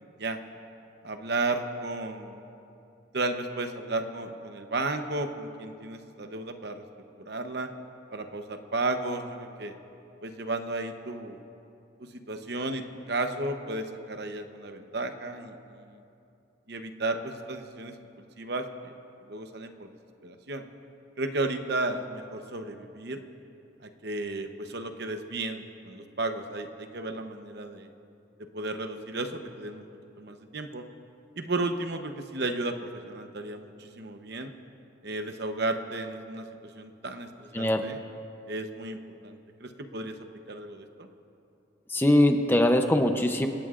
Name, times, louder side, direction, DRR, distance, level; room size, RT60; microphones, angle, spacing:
voice 1, 1.0-2.5 3.1-6.8 7.2-7.7 8.1-9.7 10.2-11.4 12.1-16.0 16.7-17.9 18.4-18.9 19.3-19.9 20.2-20.6 21.2-23.2 23.8-27.9 28.5-29.9 30.2-30.8 31.4-34.5 35.0-36.5 36.7-38.0 38.5-40.2 40.5-41.1, right 2 dB, 55° right, 6 dB, 0.9 m, -33 dB
voice 2, 41.9-43.5, left 1 dB, 10° left, 5 dB, 0.6 m, -22 dB
27.5 x 17.0 x 2.5 m, 2.7 s
head